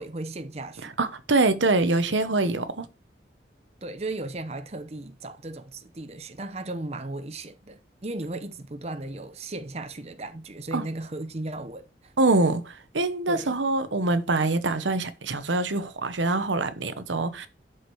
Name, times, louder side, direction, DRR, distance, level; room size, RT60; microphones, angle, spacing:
voice 1, 0.0-0.9 3.8-12.1 13.3-13.6, right 2 dB, 35° right, 0.8 m, -36 dB
voice 2, 0.8-2.9 10.7-10.8 12.2-17.5, right 2 dB, 90° right, 1.1 m, -24 dB
11.5 x 5.0 x 4.7 m
head